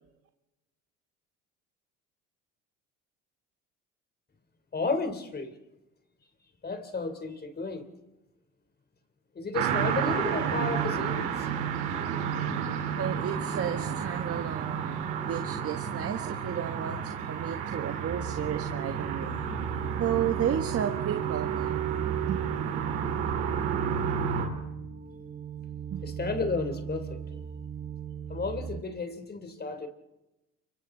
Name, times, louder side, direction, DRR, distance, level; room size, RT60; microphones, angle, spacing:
voice 1, 4.7-5.5 6.6-7.9 9.4-11.5 26.0-27.2 28.3-29.9, left 3 dB, 30° left, 8 dB, 3.7 m, -32 dB
sound 1, 9.5-24.5, right 7 dB, 90° right, 4.0 m, -31 dB
voice 2, 12.9-14.9 15.2-19.3 20.0-21.8 22.3-22.4 25.9-26.0, right 9 dB, 45° right, 5 dB, 1.5 m, -32 dB
sound 2, 18.1-28.8, right 7 dB, 30° right, 1.4 m, -37 dB
29.5 x 24.5 x 4.0 m, 0.97 s
supercardioid pair, 80°, 32 cm